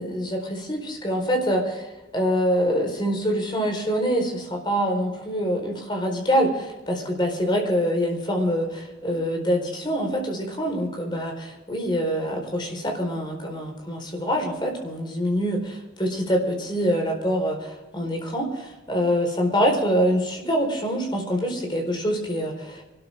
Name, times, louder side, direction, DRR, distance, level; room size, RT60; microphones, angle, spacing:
voice 1, 0.0-1.8 2.1-22.8, equal, 25° left, 2 dB, 4.4 m, -25 dB
26.0 x 13.0 x 3.7 m, 1.0 s
head